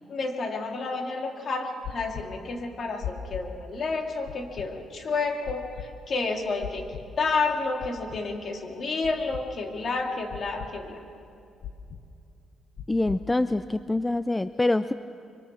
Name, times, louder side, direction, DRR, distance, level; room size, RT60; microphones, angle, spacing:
voice 1, 0.1-6.8 7.2-11.0, left 3 dB, 50° left, 2 dB, 2.8 m, -30 dB
sound 1, 1.8-2.2 3.0-3.4 4.3-4.7 5.4-5.8 6.6-7.0 7.8-8.2 9.0-9.4 10.3-10.7 11.6-12.0 12.8-13.2, left 10 dB, 70° left, 1.3 m, -37 dB
voice 2, 12.9-14.9, left 2 dB, 15° left, 13 dB, 0.4 m, -25 dB
25.5 x 24.0 x 4.5 m, 2.6 s
cardioid pair, 90°, 0 cm